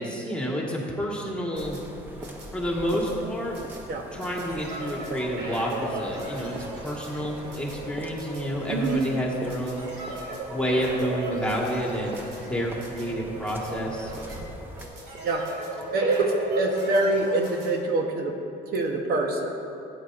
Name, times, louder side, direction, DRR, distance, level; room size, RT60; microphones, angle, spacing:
voice 1, 0.0-1.8 2.5-3.6 4.1-9.9 10.5-14.1, equal, 5° left, -3 dB, 1.8 m, -29 dB
sound 1, 1.3-17.7, right 1 dB, 90° right, 2.2 m, -37 dB
sound 2, 1.5-14.9, right 1 dB, 10° right, 0.8 m, -43 dB
voice 2, 8.7-9.0 15.2-15.5 15.9-18.4 18.7-19.5, right 2 dB, 65° right, 2 dB, 1.1 m, -25 dB
14.5 x 9.0 x 2.6 m, 2.7 s
cardioid pair, 110°, 17 cm